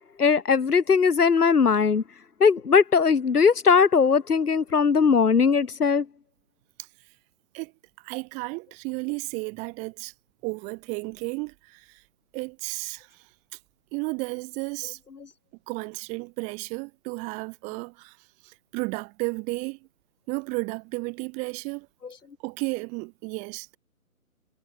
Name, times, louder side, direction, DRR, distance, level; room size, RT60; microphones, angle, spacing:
voice 1, 0.2-2.0 2.4-6.0, left 5 dB, 85° left, 1.6 m, -19 dB
voice 2, 8.0-10.1 10.4-12.0 12.3-13.1 13.9-15.0 15.7-18.2 18.4-19.8 20.3-21.9 22.4-23.8, right 30 dB, 15° right, 4.1 m, -33 dB
hypercardioid pair, 160°, 44 cm